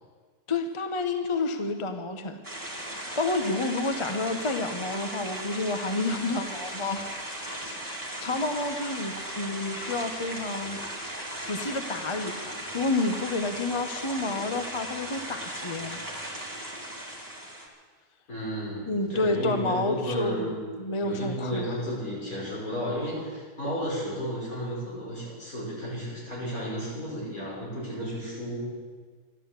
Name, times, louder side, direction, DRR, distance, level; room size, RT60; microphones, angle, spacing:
voice 1, 0.5-2.4 3.2-7.0 7.4-7.9 8.2-10.8 11.5-16.0 18.9-20.5 20.8-21.7, left 2 dB, 25° left, 6 dB, 0.8 m, -30 dB
sound 1, 2.4-17.7, right 1 dB, 10° right, 2.4 m, -37 dB
voice 2, 18.3-20.6 21.0-28.7, equal, 65° left, -6 dB, 6.4 m, -33 dB
13.0 x 12.0 x 8.1 m, 1.5 s
omnidirectional pair, 1.6 m